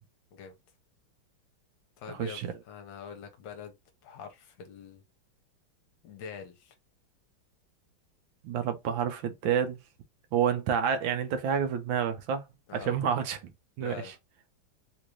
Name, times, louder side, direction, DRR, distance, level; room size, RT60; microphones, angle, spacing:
voice 1, 2.0-3.7 4.0-5.0 6.0-6.7 12.7-13.0 13.8-14.1, left 7 dB, 75° left, 1.5 m, -44 dB
voice 2, 8.4-9.8 10.3-12.4 12.7-13.4 13.8-13.9, right 8 dB, 75° right, 1.3 m, -28 dB
3.7 x 2.5 x 3.0 m
omnidirectional pair, 2.2 m